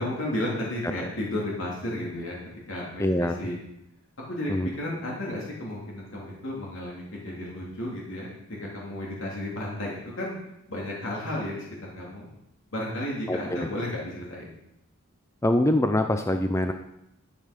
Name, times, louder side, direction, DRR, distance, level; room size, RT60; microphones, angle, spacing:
voice 1, 0.0-2.4 2.7-3.6 4.3-8.3 8.6-10.3 10.7-11.7 11.9-12.3 12.7-14.5, left 1 dB, 60° left, -4 dB, 3.1 m, -33 dB
voice 2, 3.0-3.4 4.5-4.7 13.3-13.7 15.4-16.7, left 1 dB, 10° left, 7 dB, 0.5 m, -24 dB
13.0 x 8.9 x 5.2 m, 0.83 s
head